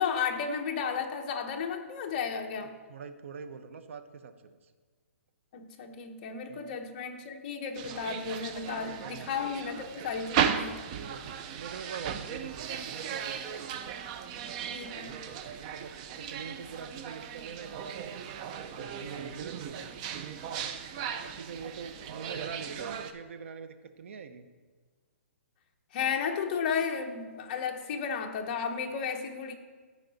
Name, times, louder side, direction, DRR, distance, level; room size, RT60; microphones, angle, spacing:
voice 1, 0.0-2.8 5.5-10.9 14.7-15.3 25.9-29.5, left 6 dB, 35° left, 4 dB, 0.9 m, -33 dB
voice 2, 2.6-4.7 6.5-6.8 7.8-8.0 9.0-9.3 10.9-14.0 15.5-18.2 18.6-19.8 20.6-20.7 21.2-24.5, right 6 dB, 60° right, 9 dB, 0.8 m, -44 dB
sound 1, 7.7-23.1, right 8 dB, 30° right, 0.5 m, -36 dB
14.0 x 4.7 x 4.0 m, 1.5 s
hypercardioid pair, 160°, 8 cm